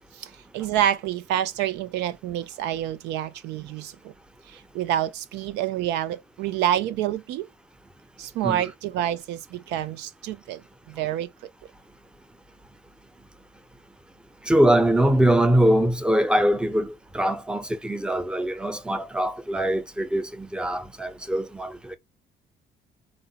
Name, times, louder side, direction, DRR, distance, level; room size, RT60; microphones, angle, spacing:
voice 1, 0.1-4.1 4.5-7.5 8.2-11.3, right 11 dB, 85° right, 0.4 m, -28 dB
voice 2, 14.4-22.0, right 1 dB, 5° right, 0.5 m, -22 dB
3.9 x 2.1 x 2.8 m
cardioid pair, 110°, 17 cm